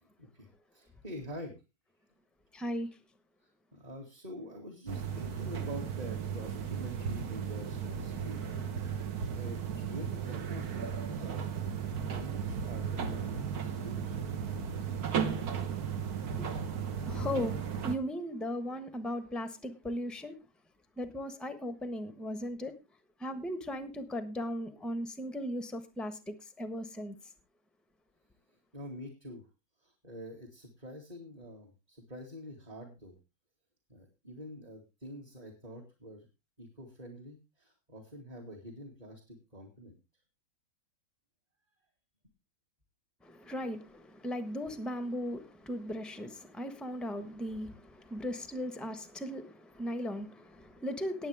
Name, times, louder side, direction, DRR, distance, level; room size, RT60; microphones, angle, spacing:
voice 1, 0.0-1.5 3.7-8.4 8.7-8.9 9.3-11.4 12.1-14.1 28.7-29.4 29.8-33.1 33.9-36.3 36.6-40.0 48.0-48.1, equal, 20° right, 2.3 m, -46 dB
voice 2, 2.5-2.9 16.3-16.5 17.1-17.6 17.8-20.4 21.0-22.7 23.2-27.1 43.2-51.3, equal, ahead, 0.8 m, -37 dB
sound 1, 4.9-18.0, right 7 dB, 50° right, 1.6 m, -35 dB
19.0 x 7.9 x 3.5 m
omnidirectional pair, 2.2 m